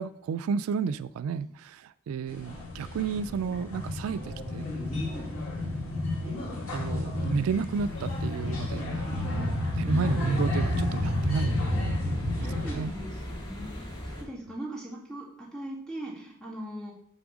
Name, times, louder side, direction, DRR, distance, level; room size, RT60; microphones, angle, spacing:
voice 1, 0.0-4.7 6.7-9.5 9.7-11.6 12.7-12.9, right 6 dB, 80° right, 17 dB, 0.3 m, -32 dB
sound 1, 2.3-12.7, left 1 dB, 75° left, 2.3 m, -31 dB
voice 2, 4.9-5.4 9.1-9.3 11.9-12.0 12.4-16.9, right 1 dB, ahead, -6 dB, 2.4 m, -40 dB
sound 2, 7.7-14.2, equal, 20° left, 1.8 m, -41 dB
7.3 x 3.5 x 6.0 m, 0.66 s
head